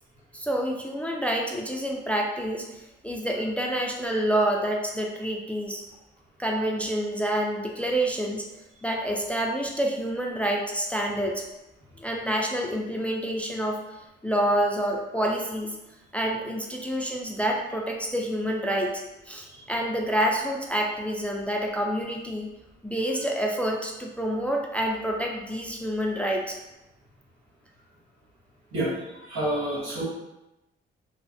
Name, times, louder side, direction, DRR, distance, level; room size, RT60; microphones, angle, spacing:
voice 1, 0.3-5.8 6.4-8.5 8.8-11.4 12.0-14.0 14.2-15.8 16.1-22.5 22.8-26.6, right 1 dB, 5° left, 0 dB, 0.3 m, -28 dB
voice 2, 28.7-30.0, right 1 dB, 85° right, -8 dB, 1.4 m, -29 dB
3.1 x 2.0 x 2.6 m, 0.95 s
cardioid pair, 90°, 20 cm